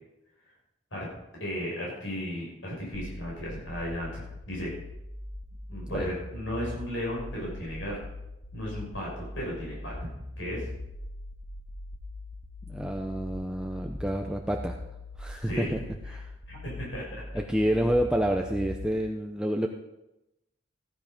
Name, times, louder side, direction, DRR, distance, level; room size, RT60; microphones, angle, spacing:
voice 1, 1.4-4.7 5.7-8.0 8.5-10.1 10.4-10.7 15.5-15.8 16.5-17.2, equal, 90° left, -4 dB, 6.4 m, -35 dB
sound 1, 2.9-18.9, left 1 dB, 20° left, 2.0 m, -41 dB
voice 2, 12.7-14.8 15.2-15.8 16.1-16.3 17.3-19.7, equal, 5° right, 3 dB, 0.6 m, -28 dB
16.0 x 10.5 x 5.2 m, 0.93 s
head